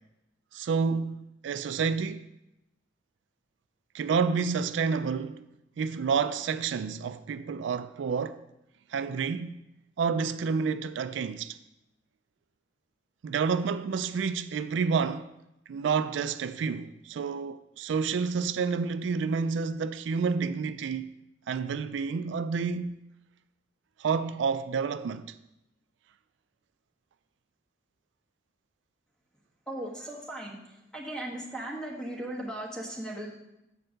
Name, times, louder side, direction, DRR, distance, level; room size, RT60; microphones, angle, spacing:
voice 1, 0.5-2.3 3.9-5.5 5.8-8.4 8.9-9.6 10.0-11.6 13.2-15.3 15.7-21.1 21.5-23.0 24.0-25.3, right 5 dB, 80° right, 0.3 m, -29 dB
voice 2, 29.7-30.6 30.9-33.3, right 1 dB, 5° left, 1.4 m, -37 dB
7.3 x 4.5 x 6.4 m
head